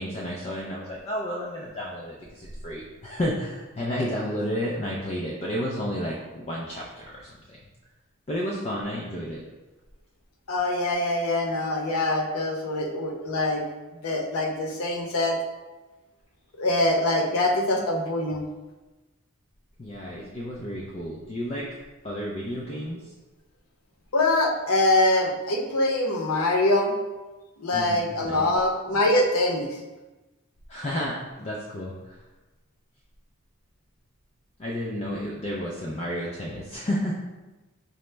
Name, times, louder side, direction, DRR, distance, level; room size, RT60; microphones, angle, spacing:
voice 1, 0.0-7.6 8.3-9.4 19.8-21.7 22.0-23.1 27.7-28.5 30.7-32.2 34.6-37.2, equal, 30° left, -4 dB, 0.3 m, -31 dB
voice 2, 10.5-13.6 14.0-15.4 16.6-18.4 24.1-26.9 27.6-29.8, left 2 dB, 85° left, 1 dB, 0.6 m, -24 dB
5.4 x 2.0 x 3.2 m, 1.1 s
head